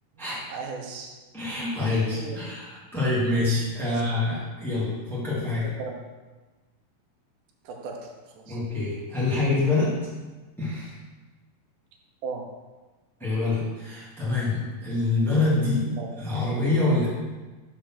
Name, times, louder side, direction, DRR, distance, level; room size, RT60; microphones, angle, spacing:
voice 1, 0.1-1.1 1.8-2.4 3.8-4.0 5.6-6.0 7.6-8.6 12.2-12.5 15.9-16.1, right 4 dB, 75° right, 2 dB, 2.1 m, -37 dB
voice 2, 1.3-5.6 8.5-9.9 10.6-10.9 13.2-15.9 16.1-17.1, left 2 dB, ahead, -8 dB, 0.7 m, -26 dB
5.7 x 4.3 x 5.8 m, 1.2 s
omnidirectional pair, 4.2 m